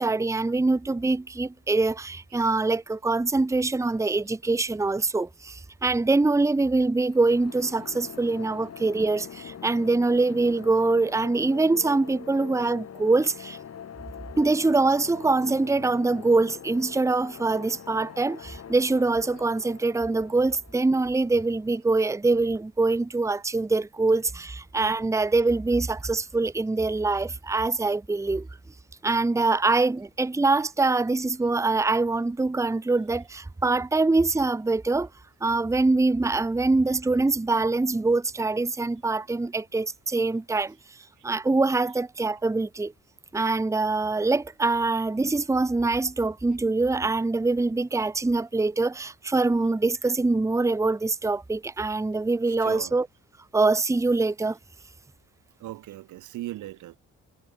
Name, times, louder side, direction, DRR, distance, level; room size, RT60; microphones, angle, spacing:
voice 1, 0.0-13.6 14.4-28.5 29.0-35.1 35.4-41.0 41.2-42.9 43.3-53.1 53.5-54.6, right 3 dB, 10° right, 0.8 m, -24 dB
sound 1, 7.1-21.8, left 8 dB, 55° left, 4.5 m, -44 dB
voice 2, 52.6-53.0 55.6-57.0, right 15 dB, 85° right, 1.5 m, -38 dB
cardioid pair, 90°, 30 cm